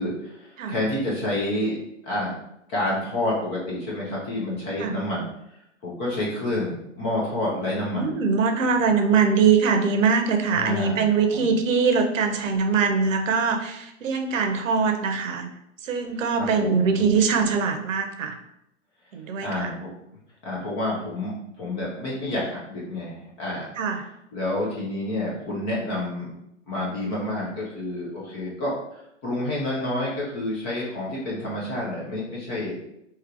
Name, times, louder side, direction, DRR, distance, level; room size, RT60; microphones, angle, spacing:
voice 1, 0.0-1.8 2.0-2.3 2.7-5.3 5.8-8.1 10.5-11.0 11.3-11.5 16.4-17.0 19.4-19.9 20.4-23.7 24.3-26.3 26.7-32.8, left 1 dB, 15° left, -5 dB, 0.3 m, -29 dB
voice 2, 7.9-15.5 15.8-18.4 19.1-19.7 23.8-24.0, right 5 dB, 80° right, 5 dB, 0.7 m, -22 dB
3.2 x 2.9 x 2.5 m, 0.81 s
hypercardioid pair, 125°, 38 cm